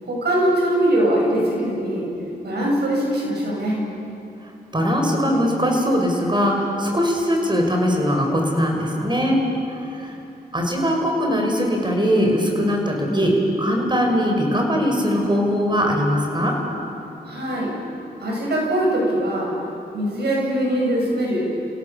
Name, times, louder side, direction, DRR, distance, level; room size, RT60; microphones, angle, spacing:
voice 1, 0.0-2.1 2.4-3.9 17.3-17.7 18.2-19.5 19.9-21.5, right 1 dB, 75° right, -3 dB, 7.9 m, -22 dB
voice 2, 4.7-9.4 9.7-10.2 10.5-16.6, equal, 25° right, 1 dB, 6.0 m, -21 dB
29.5 x 17.0 x 7.2 m, 2.8 s
cardioid pair, 55°, 17 cm